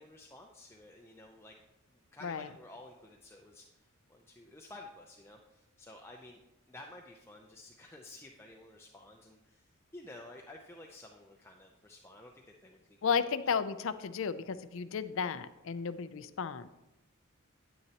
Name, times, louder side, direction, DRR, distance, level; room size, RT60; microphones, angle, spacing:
voice 1, 0.0-1.6 1.9-13.1, left 2 dB, 10° left, 0 dB, 0.6 m, -53 dB
voice 2, 13.0-16.7, left 6 dB, 65° left, 13 dB, 0.5 m, -33 dB
9.7 x 9.1 x 2.9 m, 0.96 s
head